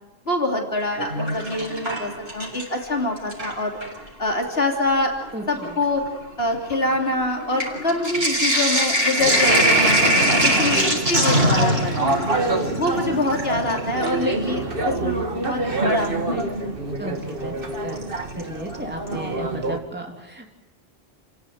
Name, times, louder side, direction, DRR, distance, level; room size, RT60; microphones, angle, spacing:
voice 1, 0.3-3.7 4.2-5.1 5.5-6.0 6.4-9.9 10.3-12.0 12.5-16.7, left 2 dB, 70° left, 2 dB, 3.6 m, -25 dB
Sink (filling or washing), 0.8-2.8 3.2-4.0 4.8-4.9 5.2-14.3 16.0-16.1 18.0-18.4 18.7-18.8 19.1-19.2, right 1 dB, 75° right, 5.9 m, -22 dB
voice 2, 5.3-5.8 10.3-10.7 17.0-17.5 17.8-18.0 18.4-20.5, right 1 dB, 10° right, 1 dB, 3.2 m, -34 dB
sound 1, 9.2-19.8, right 2 dB, 60° right, 2.3 m, -27 dB
30.0 x 16.5 x 9.3 m, 0.96 s
omnidirectional pair, 1.0 m